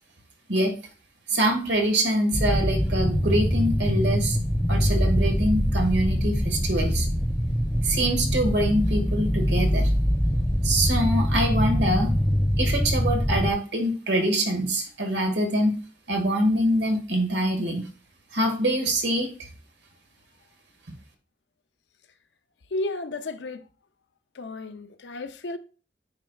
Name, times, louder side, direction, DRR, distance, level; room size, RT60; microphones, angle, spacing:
voice 1, 1.3-4.4 4.7-7.1 7.8-9.9 10.6-12.1 12.6-15.7 16.1-17.8 18.3-19.3, right 1 dB, 70° right, 1.7 m, -24 dB
sound 1, 2.3-13.5, equal, 5° left, 0.4 m, -24 dB
voice 2, 22.7-23.7 24.3-25.6, left 2 dB, 75° left, 0.6 m, -33 dB
9.5 x 4.3 x 2.3 m
head